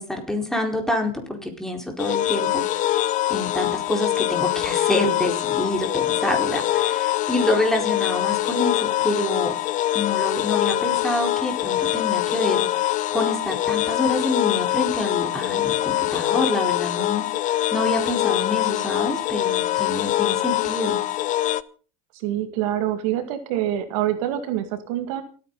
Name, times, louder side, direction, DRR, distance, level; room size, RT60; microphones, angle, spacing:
voice 1, 0.0-9.5 9.9-21.0, left 1 dB, ahead, 3 dB, 4.4 m, -27 dB
sound 1, 2.0-21.6, left 14 dB, 45° left, 0.7 m, -24 dB
voice 2, 22.1-25.2, right 12 dB, 70° right, 9 dB, 2.2 m, -26 dB
28.5 x 9.6 x 4.0 m, 0.39 s
hypercardioid pair, 95°, 18 cm